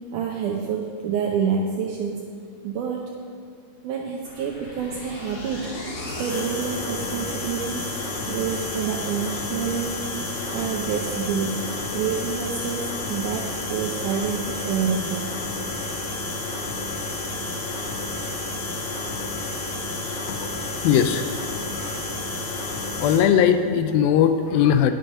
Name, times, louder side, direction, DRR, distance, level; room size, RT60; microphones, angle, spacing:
voice 1, 0.1-2.3 2.6-3.2 3.8-5.7 6.2-7.9 8.3-10.1 10.5-11.6 11.9-15.3, right 6 dB, 80° right, 1 dB, 1.8 m, -28 dB
sound 1, 4.2-23.2, left 2 dB, 50° left, 1.3 m, -31 dB
voice 2, 20.8-21.3 21.7-22.0 23.0-24.9, left 8 dB, 80° left, 9 dB, 2.3 m, -19 dB
9.7 x 9.0 x 5.5 m, 2.2 s
omnidirectional pair, 4.4 m